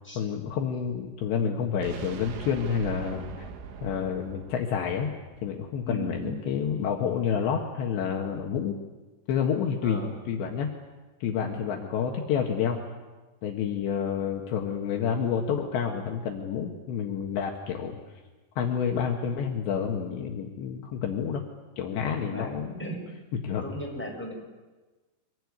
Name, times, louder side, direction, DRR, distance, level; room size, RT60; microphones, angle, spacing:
voice 1, 0.2-3.5 3.8-5.1 5.4-8.8 9.3-10.7 11.2-12.8 13.4-18.0 18.6-21.4 21.8-22.9 23.4-23.7, left 7 dB, 70° left, 1 dB, 3.7 m, -29 dB
sound 1, 1.8-5.8, right 7 dB, 85° right, 4.3 m, -42 dB
voice 2, 5.8-6.4 9.8-10.2 11.4-11.6 22.2-23.0 23.6-24.3, equal, ahead, -1 dB, 6.4 m, -37 dB
25.5 x 19.5 x 9.6 m, 1.2 s
omnidirectional pair, 5.5 m